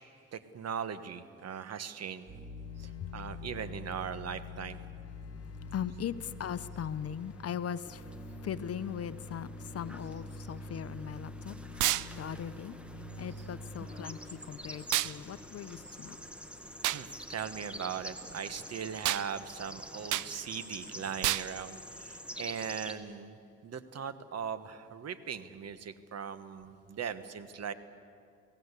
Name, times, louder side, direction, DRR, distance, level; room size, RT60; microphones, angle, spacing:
voice 1, 0.3-2.3 2.8-4.8 13.4-13.5 15.7-16.0 16.9-27.7, right 7 dB, 55° right, 12 dB, 1.4 m, -39 dB
sound 1, 2.3-19.7, left 2 dB, 25° right, 6.7 m, -47 dB
voice 2, 2.8-3.2 5.2-16.2, left 8 dB, 50° left, 14 dB, 0.9 m, -40 dB
sound 2, 5.5-22.9, equal, 5° right, 1.6 m, -48 dB
sound 3, 11.8-12.1 14.9-15.1 16.8-17.0 19.0-19.3 20.1-20.3 21.2-21.5, right 15 dB, 85° right, 0.6 m, -29 dB
27.5 x 18.0 x 8.3 m, 2.4 s
cardioid pair, 90°, 30 cm